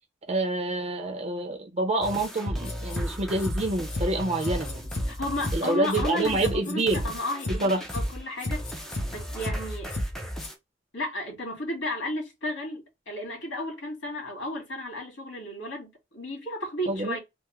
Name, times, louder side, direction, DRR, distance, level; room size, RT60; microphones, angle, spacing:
voice 1, 0.3-4.9 5.5-7.0 7.6-7.8 16.9-17.2, right 2 dB, 35° right, 0.7 m, -27 dB
sound 1, 2.0-10.5, equal, ahead, 0.5 m, -38 dB
sound 2, 2.5-3.1 3.4-3.6 3.9-4.1 4.4-5.1 5.4-5.6 5.9-6.1 6.4-7.1 7.4-7.6 7.9-8.1 8.4-9.1 9.4-9.6 9.9-10.1 10.4-10.5, left 1 dB, 45° left, 0.8 m, -30 dB
voice 2, 5.1-8.6 9.1-9.9 10.9-17.2, left 1 dB, 80° left, 1.9 m, -33 dB
3.5 x 2.1 x 3.1 m
head